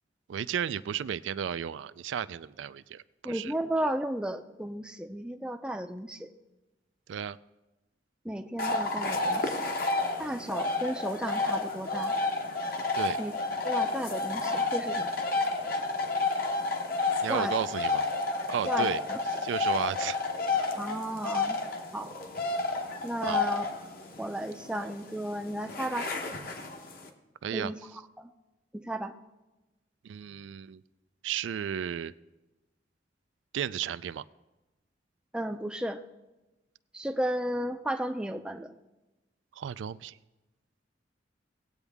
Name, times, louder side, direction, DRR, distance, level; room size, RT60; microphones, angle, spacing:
voice 1, 0.3-3.5 7.1-7.4 12.9-13.2 17.2-18.0 18.5-19.0 19.4-20.2 23.3-23.4 27.4-27.7 30.0-30.8 31.2-32.1 33.5-34.2 39.6-40.2, right 8 dB, 90° right, 15 dB, 0.3 m, -33 dB
voice 2, 3.2-6.3 8.2-9.7 10.2-12.1 13.2-13.4 13.6-15.1 17.3-17.5 18.7-19.2 20.8-21.6 21.9-22.1 23.0-23.6 24.2-26.1 27.5-27.8 28.2-28.3 28.7-29.1 35.3-36.0 36.9-38.7, right 1 dB, 5° right, 6 dB, 0.5 m, -34 dB
sound 1, 8.6-27.1, left 3 dB, 50° left, 1.1 m, -31 dB
19.0 x 8.1 x 3.5 m, 1.1 s
head